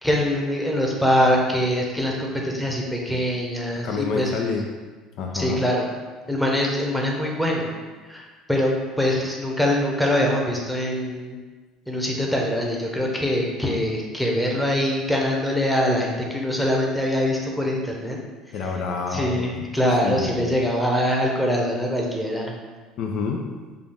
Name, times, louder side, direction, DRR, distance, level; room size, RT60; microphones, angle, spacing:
voice 1, 0.0-4.3 5.3-5.9 6.3-7.8 8.1-11.4 11.9-18.2 19.1-22.5, equal, 5° left, -1 dB, 0.9 m, -23 dB
voice 2, 3.8-4.7 5.2-5.7 18.5-19.4 20.0-20.6 23.0-23.4, left 5 dB, 60° left, 2 dB, 0.5 m, -28 dB
5.0 x 2.4 x 3.7 m, 1.3 s
supercardioid pair, 80°, 0 cm